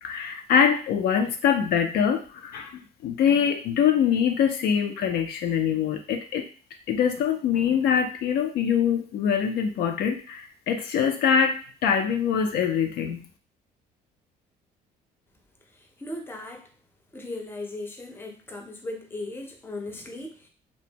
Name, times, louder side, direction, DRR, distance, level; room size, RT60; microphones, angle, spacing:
voice 1, 0.0-6.5 6.9-13.2, left 7 dB, 70° left, 5 dB, 0.4 m, -24 dB
voice 2, 15.7-16.7 17.1-20.5, left 2 dB, 15° left, 2 dB, 0.5 m, -37 dB
2.5 x 2.2 x 2.8 m, 0.38 s
cardioid pair, 110°, 17 cm